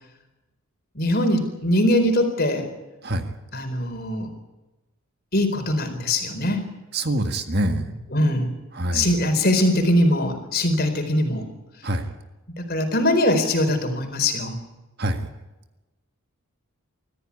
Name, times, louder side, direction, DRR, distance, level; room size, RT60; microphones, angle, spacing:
voice 1, 0.9-2.6 3.5-4.3 5.3-6.7 8.1-8.5 8.9-11.5 12.6-14.6, left 1 dB, 45° left, 6 dB, 4.3 m, -21 dB
voice 2, 6.9-8.0 8.7-9.2 11.8-12.1 15.0-15.3, right 1 dB, 45° right, 7 dB, 1.8 m, -25 dB
25.0 x 15.0 x 8.5 m, 1.1 s
head